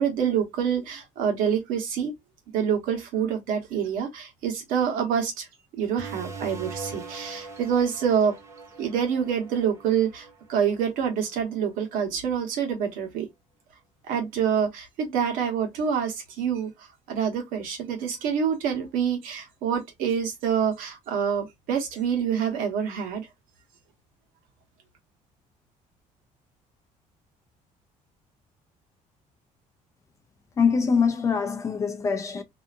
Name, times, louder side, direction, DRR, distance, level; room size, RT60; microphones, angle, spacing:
voice 1, 0.0-2.1 2.5-5.5 5.8-8.3 8.8-13.3 14.1-23.3, right 7 dB, 80° right, 1.1 m, -26 dB
sound 1, 6.0-11.2, right 4 dB, 20° right, 0.6 m, -41 dB
voice 2, 30.6-32.4, left 5 dB, 20° left, 0.4 m, -23 dB
2.7 x 2.4 x 2.5 m
cardioid pair, 170°, 14 cm